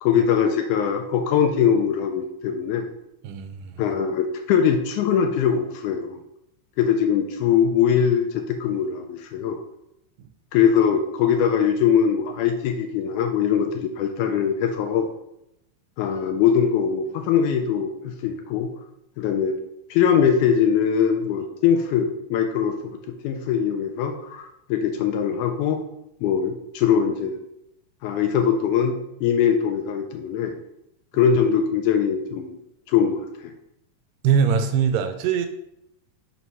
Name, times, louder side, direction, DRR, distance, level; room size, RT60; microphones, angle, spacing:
voice 1, 0.0-2.9 3.8-6.2 6.8-9.6 10.5-15.1 16.0-18.7 19.2-19.6 19.9-25.8 26.2-27.4 28.0-30.6 31.1-32.6 32.9-33.5, left 7 dB, 80° left, 5 dB, 1.9 m, -22 dB
voice 2, 3.2-3.8 34.2-35.5, right 7 dB, 90° right, 7 dB, 2.2 m, -22 dB
5.8 x 3.1 x 5.4 m, 0.81 s
omnidirectional pair, 3.8 m